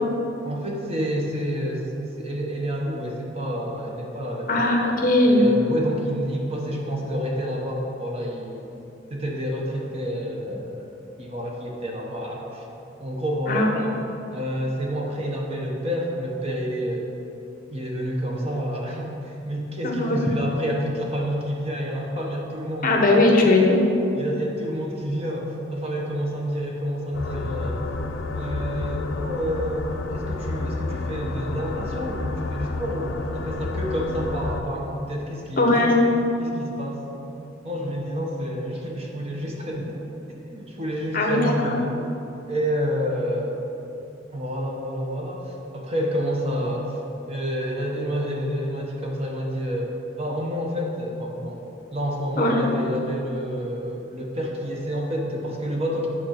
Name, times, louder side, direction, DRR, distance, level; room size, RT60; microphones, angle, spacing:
voice 1, 0.4-1.8 2.2-4.5 5.3-8.7 9.1-12.7 13.0-13.7 14.3-17.1 17.7-22.9 24.2-27.8 28.3-36.1 36.4-37.0 37.6-41.9 42.5-43.6 44.3-47.0 47.3-51.6 51.9-56.1, equal, 35° right, -1 dB, 1.1 m, -29 dB
voice 2, 4.5-5.4 13.5-13.8 19.8-20.2 22.8-23.8 35.6-36.0 41.1-41.8 52.4-52.6, left 2 dB, 45° left, 1 dB, 1.1 m, -19 dB
sound 1, 27.1-34.6, left 2 dB, 85° left, 0.6 m, -30 dB
9.0 x 4.4 x 6.5 m, 2.9 s
head